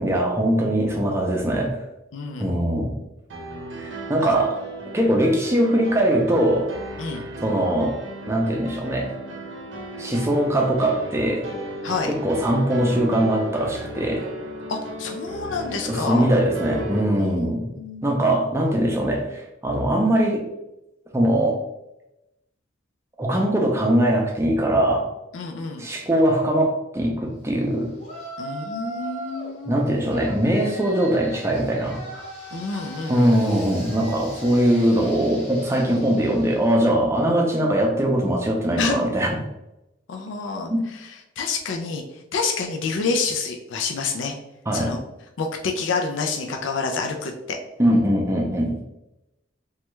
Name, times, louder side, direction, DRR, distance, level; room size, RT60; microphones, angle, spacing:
voice 1, 0.0-1.8 2.4-2.9 3.8-4.6 4.9-6.7 7.4-8.0 8.3-9.1 10.0-11.5 12.0-14.3 15.9-17.7 18.0-20.5 21.1-21.6 23.2-25.1 25.8-28.0 29.7-32.3 33.1-39.4 40.7-40.8 44.7-45.0 47.8-48.8, right 1 dB, 15° right, 1 dB, 0.5 m, -21 dB
voice 2, 2.1-2.5 4.2-4.3 7.0-7.2 11.8-12.1 14.7-16.3 17.2-17.3 17.8-18.0 25.3-25.9 28.4-29.9 32.5-33.3 38.8-39.0 40.1-40.7 41.4-42.0 42.3-44.3 44.7-45.0 45.4-47.6, left 4 dB, 80° left, 3 dB, 0.4 m, -28 dB
sound 1, 3.3-17.0, right 1 dB, 75° right, 0.6 m, -35 dB
Yell, 28.0-29.5 30.1-36.8, right 1 dB, 35° left, 0.8 m, -39 dB
3.1 x 2.3 x 3.0 m, 0.92 s
head